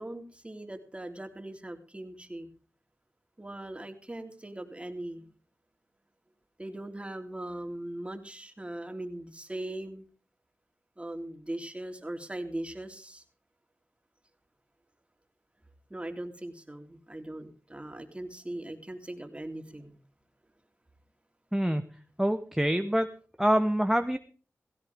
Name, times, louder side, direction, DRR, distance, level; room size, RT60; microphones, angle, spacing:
voice 1, 0.0-2.5 3.4-5.3 6.6-10.0 11.0-13.2 15.9-20.0, right 1 dB, 20° right, 5 dB, 3.4 m, -40 dB
voice 2, 21.5-21.8 22.2-23.1 23.4-24.2, equal, 5° right, 7 dB, 1.2 m, -25 dB
16.5 x 16.5 x 3.5 m, 0.39 s
cardioid pair, 45°, 5 cm